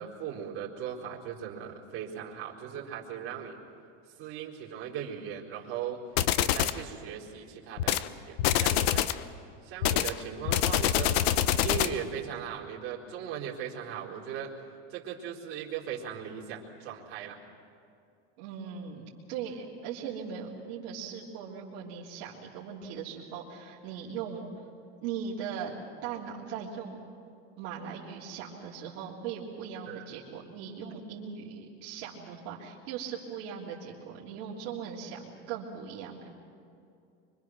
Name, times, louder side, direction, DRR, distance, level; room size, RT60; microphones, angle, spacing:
voice 1, 0.0-3.6 4.2-6.0 6.4-9.1 9.6-11.2 11.6-14.5 14.9-17.4 29.9-30.1 30.9-31.0, right 8 dB, 45° right, -5 dB, 4.1 m, -38 dB
sound 1, 6.2-6.8 7.8-8.1 8.4-9.2 9.8-12.0, left 12 dB, 70° left, 0.9 m, -26 dB
voice 2, 18.4-24.5 25.0-25.8 26.0-27.0 27.6-36.3, right 7 dB, 65° right, -5 dB, 3.4 m, -39 dB
25.0 x 24.5 x 6.3 m, 2.5 s
supercardioid pair, 150°, 31 cm